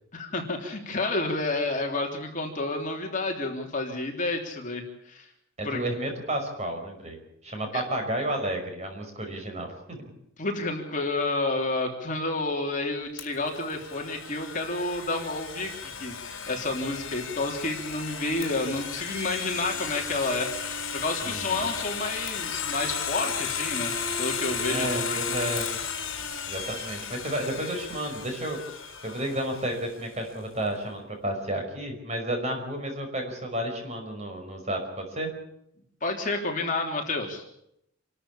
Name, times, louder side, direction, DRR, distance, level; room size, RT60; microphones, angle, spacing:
voice 1, 0.1-5.3 5.6-5.8 7.7-7.8 10.4-23.9 24.2-25.6 36.0-37.4, left 2 dB, 35° left, 2 dB, 3.4 m, -30 dB
voice 2, 5.6-10.0 21.2-21.7 24.7-25.7 26.5-28.6 29.0-35.3, right 1 dB, 30° right, 4 dB, 5.5 m, -32 dB
Domestic sounds home sounds, 13.2-30.0, left 6 dB, 60° left, 4.0 m, -34 dB
27.5 x 13.5 x 8.6 m, 0.77 s
head